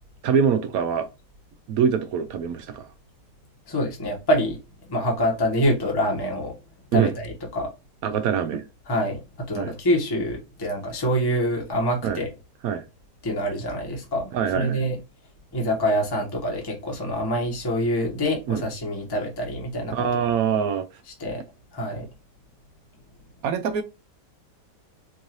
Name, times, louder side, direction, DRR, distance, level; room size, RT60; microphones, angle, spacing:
voice 1, 0.2-1.1 1.7-2.9 6.9-7.1 8.0-8.7 9.5-9.7 12.0-12.2 12.6-12.8 14.3-14.8 18.5-18.6 19.9-21.0 23.4-23.8, right 7 dB, 70° right, 0.9 m, -24 dB
voice 2, 3.7-4.6 4.9-6.5 6.9-7.7 8.9-12.3 13.2-15.0 15.5-20.1 21.2-21.4 21.7-22.1, equal, 15° left, 1.1 m, -26 dB
4.5 x 2.6 x 3.0 m
omnidirectional pair, 1.9 m